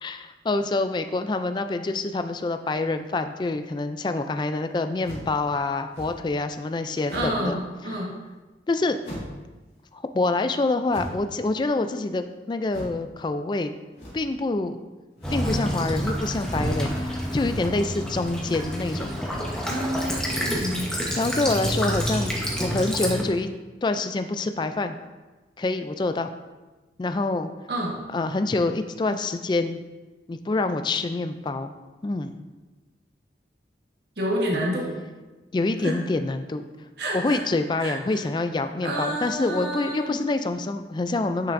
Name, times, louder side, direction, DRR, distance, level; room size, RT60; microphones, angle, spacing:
voice 1, 0.0-7.6 7.8-8.0 8.7-9.0 9.9-13.7 14.1-14.8 15.3-19.2 21.1-22.3 22.6-23.5 23.8-24.9 25.6-26.3 27.0-27.5 28.1-29.8 30.3-31.7 32.0-32.3 35.5-36.6 37.1-41.5, left 2 dB, 25° left, 8 dB, 0.3 m, -26 dB
sound 1, 5.0-5.4 5.9-6.3 7.0-7.5 9.0-9.5 10.9-11.4 12.7-13.0 13.9-14.4 15.2-15.5 16.4-16.8 17.2-17.6 18.3-18.7 19.4-19.8, equal, 75° left, 2.0 m, -40 dB
voice 2, 7.1-8.2 19.7-20.9 27.7-28.0 34.2-34.9 35.8-36.0 37.0-37.4 37.8-38.2 38.8-40.3, right 1 dB, 70° right, -2 dB, 1.3 m, -29 dB
Child speech kid speaking / Bird vocalization bird call bird song / Stream, 15.2-23.2, equal, 5° left, 1.0 m, -28 dB
9.8 x 5.6 x 2.6 m, 1.2 s
head